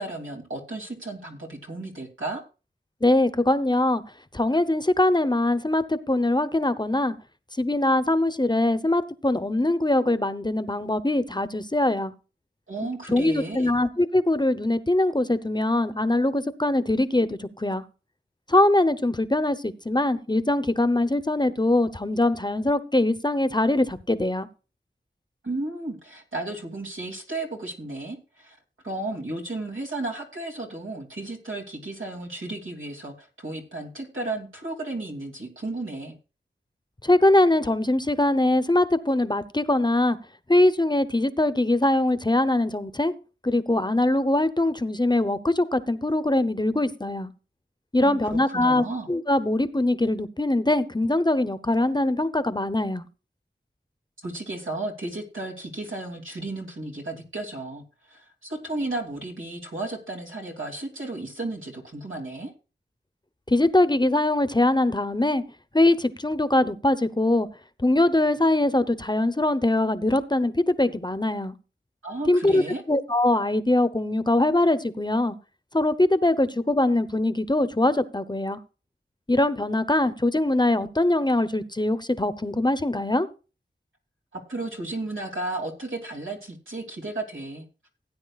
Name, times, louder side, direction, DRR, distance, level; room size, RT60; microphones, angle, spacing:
voice 1, 0.0-2.4 12.7-13.7 25.4-28.6 28.8-36.1 47.9-49.1 54.2-62.5 72.0-72.8 84.3-87.6, right 2 dB, 90° right, 1 dB, 2.8 m, -34 dB
voice 2, 3.0-4.0 4.3-7.1 7.6-12.1 13.1-17.8 18.5-24.5 37.0-40.2 40.5-43.1 43.4-47.3 47.9-53.0 63.5-65.4 65.7-67.5 67.8-71.5 72.3-75.3 75.7-78.6 79.3-83.3, left 1 dB, 20° left, 12 dB, 0.8 m, -22 dB
17.0 x 9.2 x 2.4 m, 0.33 s
wide cardioid pair, 50°, 20 cm